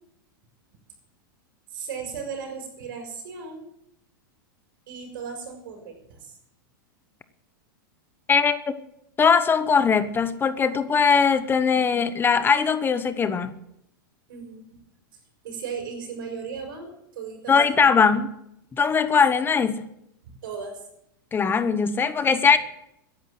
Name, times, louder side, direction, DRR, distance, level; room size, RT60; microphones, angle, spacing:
voice 1, 1.7-3.7 4.9-6.3 14.3-14.8 15.4-17.9 20.4-20.8, right 6 dB, 75° right, 5 dB, 6.2 m, -36 dB
voice 2, 8.3-8.8 9.2-13.5 17.5-18.3 18.7-19.8 21.3-22.6, left 6 dB, 20° left, 12 dB, 0.9 m, -20 dB
15.0 x 10.5 x 7.7 m, 0.80 s
hypercardioid pair, 120°, 11 cm